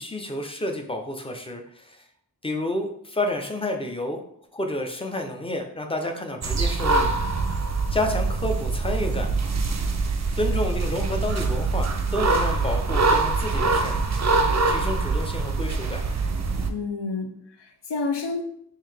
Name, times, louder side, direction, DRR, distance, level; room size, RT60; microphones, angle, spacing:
voice 1, 0.0-2.0 2.4-4.2 4.5-7.1 7.9-9.3 10.3-14.0 14.7-16.0, left 1 dB, 15° left, 4 dB, 0.5 m, -30 dB
sound 1, 6.4-16.7, right 3 dB, 45° right, 0.4 m, -24 dB
voice 2, 16.7-18.4, left 4 dB, 85° left, 5 dB, 0.6 m, -30 dB
3.8 x 2.7 x 3.3 m, 0.70 s
wide cardioid pair, 50°, 41 cm